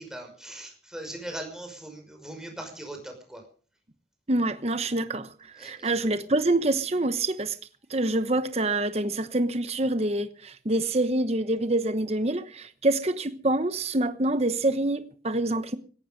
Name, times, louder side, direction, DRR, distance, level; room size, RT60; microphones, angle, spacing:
voice 1, 0.0-3.4 5.6-5.9, right 1 dB, 5° right, 5.5 m, -40 dB
voice 2, 4.3-7.6 7.9-15.8, right 2 dB, 35° right, 1.0 m, -26 dB
17.5 x 15.0 x 5.3 m
head